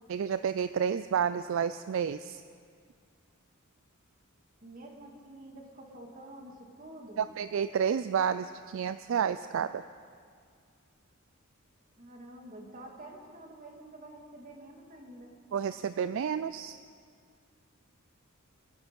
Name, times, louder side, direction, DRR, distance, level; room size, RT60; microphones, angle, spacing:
voice 1, 0.1-2.4 7.2-9.8 15.5-16.8, right 7 dB, 65° right, 12 dB, 0.3 m, -30 dB
voice 2, 4.6-7.2 12.0-15.3, right 1 dB, 40° right, 1 dB, 2.3 m, -48 dB
25.5 x 9.5 x 5.3 m, 2.1 s
head